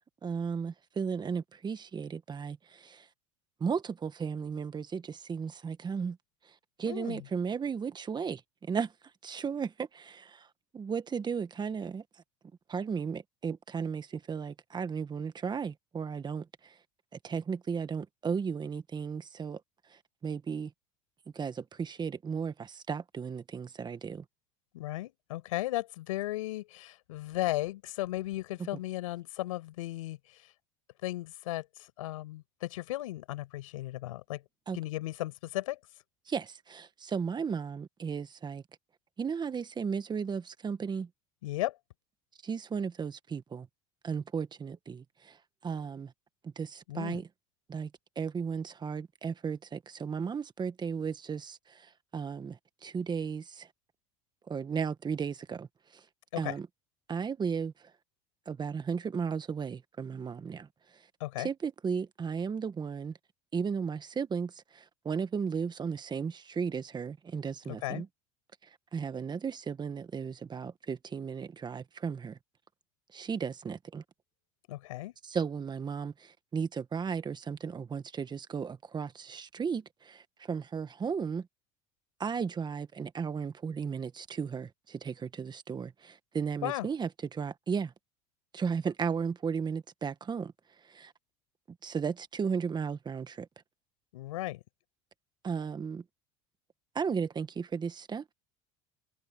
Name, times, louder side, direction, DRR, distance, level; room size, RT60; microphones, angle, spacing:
voice 1, 0.2-3.0 3.6-6.2 6.8-8.9 9.2-10.5 10.7-12.0 12.7-16.7 17.2-19.6 20.2-20.7 21.3-24.2 28.6-28.7 34.7-34.8 36.3-38.6 39.2-41.1 42.4-43.7 44.0-45.4 45.6-46.1 46.4-47.3 47.7-47.9 48.1-53.7 54.5-55.7 56.4-56.7 57.1-57.7 58.5-60.7 61.4-63.1 63.5-68.1 68.9-72.4 73.1-74.0 75.2-81.5 82.2-87.9 88.5-90.5 90.9-91.1 91.8-93.5 95.4-96.0 96.9-98.2, right 6 dB, 25° right, 1.6 m, -35 dB
voice 2, 6.8-7.2 24.7-30.5 31.0-34.4 34.7-35.8 41.4-41.8 46.9-47.2 56.3-56.5 61.2-61.5 67.7-68.0 74.7-75.1 86.6-86.9 94.1-94.6, left 16 dB, 90° left, 5.7 m, -35 dB
supercardioid pair, 100°, 17 cm